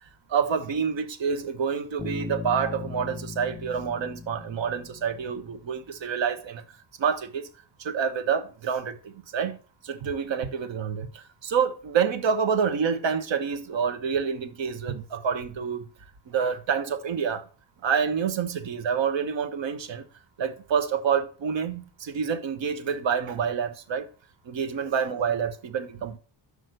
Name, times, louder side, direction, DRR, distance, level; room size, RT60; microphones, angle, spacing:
voice 1, 0.3-6.6 7.0-7.5 7.8-9.6 9.8-15.9 16.3-17.4 17.8-20.1 20.4-24.1 24.4-26.2, right 6 dB, 70° right, 1.1 m, -27 dB
Bass guitar, 2.0-5.7, left 4 dB, 10° left, 0.5 m, -39 dB
6.2 x 4.9 x 6.6 m
wide cardioid pair, 130°, 47 cm